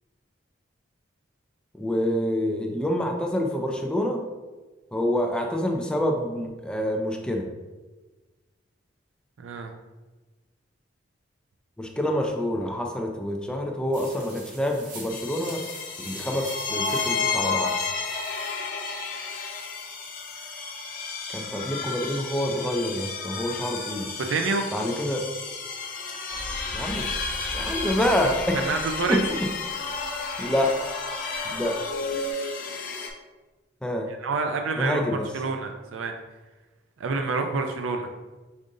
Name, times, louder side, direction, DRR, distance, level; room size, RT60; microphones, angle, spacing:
voice 1, 1.7-4.2 4.9-7.5 11.8-15.6 16.0-17.7 21.3-24.1 24.7-25.2 26.7-27.1 27.5-28.6 29.1-29.2 30.4-30.7 31.5-31.8 33.8-34.1 34.8-35.3, left 1 dB, 5° left, 1 dB, 0.4 m, -27 dB
voice 2, 9.4-9.7 24.3-24.7 28.2-29.2 34.1-36.2 37.0-38.1, right 4 dB, 90° right, 5 dB, 0.4 m, -28 dB
sound 1, 13.9-18.7, right 2 dB, 45° right, 1.2 m, -44 dB
sound 2, 15.1-33.1, left 4 dB, 50° left, 0.6 m, -32 dB
sound 3, 26.3-32.3, left 2 dB, 20° left, 1.1 m, -39 dB
5.2 x 2.5 x 3.7 m, 1.2 s
head